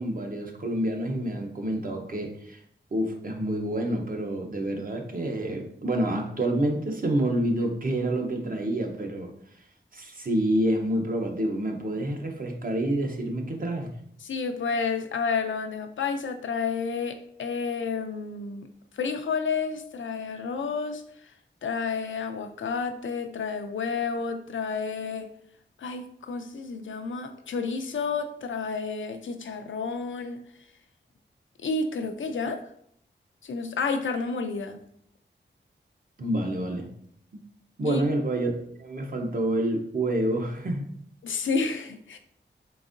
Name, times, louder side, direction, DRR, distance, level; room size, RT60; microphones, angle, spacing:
voice 1, 0.0-2.6 2.9-9.3 9.9-13.9 36.2-36.9 37.3-37.4 37.8-38.5 38.8-40.9, right 1 dB, 45° right, 2 dB, 0.7 m, -28 dB
voice 2, 14.2-18.7 18.9-21.3 21.6-25.3 25.8-30.4 31.6-32.6 33.4-34.8 37.9-38.0 41.2-42.2, left 5 dB, 90° left, 6 dB, 0.4 m, -30 dB
3.9 x 3.5 x 2.5 m, 0.67 s
wide cardioid pair, 85°, 20 cm